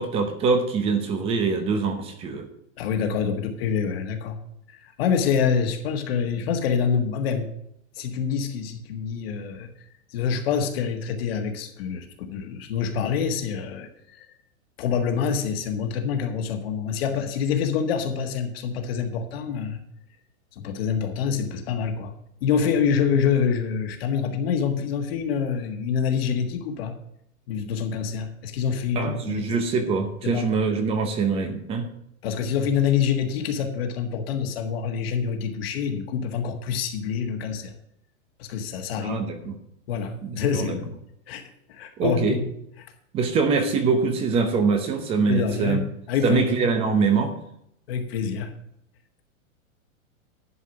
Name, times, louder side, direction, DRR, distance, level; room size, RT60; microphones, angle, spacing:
voice 1, 0.0-2.5 28.9-31.9 39.0-39.6 40.2-40.8 42.0-42.4 43.1-45.8 46.2-47.3, right 4 dB, 15° right, 7 dB, 0.8 m, -24 dB
voice 2, 2.8-4.4 4.7-7.5 7.9-9.7 10.1-14.3 14.8-19.8 20.6-22.1 22.4-26.9 27.5-29.6 30.2-30.5 32.2-37.7 38.4-39.2 39.9-40.9 41.3-42.5 45.3-46.7 47.9-48.5, left 7 dB, 45° left, 4 dB, 1.6 m, -26 dB
11.0 x 4.9 x 8.1 m, 0.73 s
supercardioid pair, 165°, 42 cm